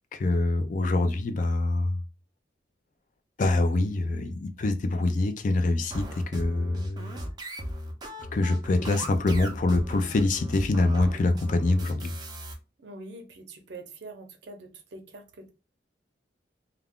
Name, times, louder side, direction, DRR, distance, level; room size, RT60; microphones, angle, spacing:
voice 1, 0.1-2.0 3.4-7.2 8.3-12.1, left 2 dB, 45° left, 0.4 m, -25 dB
sound 1, 5.9-12.5, equal, 25° right, 0.5 m, -37 dB
voice 2, 12.8-15.5, right 2 dB, 65° right, 0.6 m, -44 dB
2.3 x 2.3 x 3.4 m
head